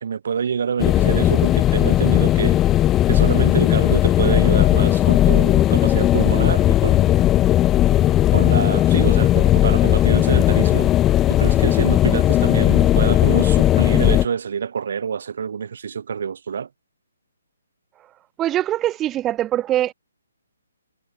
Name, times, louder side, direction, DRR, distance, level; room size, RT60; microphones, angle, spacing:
voice 1, 0.0-2.6 3.1-7.2 8.3-10.9 11.3-16.7, right 7 dB, 55° right, 1.2 m, -26 dB
sound 1, 0.8-14.3, left 13 dB, 15° left, 0.6 m, -17 dB
voice 2, 18.4-19.9, right 13 dB, 15° right, 1.6 m, -22 dB
figure-of-eight pair, 135°, 0 cm